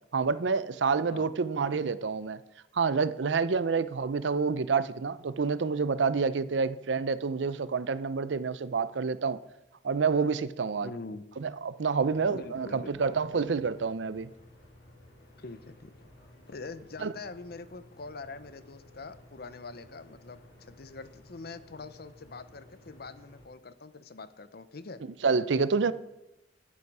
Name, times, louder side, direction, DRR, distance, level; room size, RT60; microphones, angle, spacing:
voice 1, 0.1-2.4 2.7-9.4 9.8-10.9 11.4-14.3 17.0-17.1 25.2-25.9, right 5 dB, 80° right, 0.5 m, -28 dB
voice 2, 10.8-11.2 12.3-13.0 15.4-15.9 16.5-25.0, left 3 dB, 60° left, 0.8 m, -44 dB
sound 1, 12.0-23.4, left 1 dB, 75° left, 3.9 m, -55 dB
14.0 x 8.1 x 4.8 m
head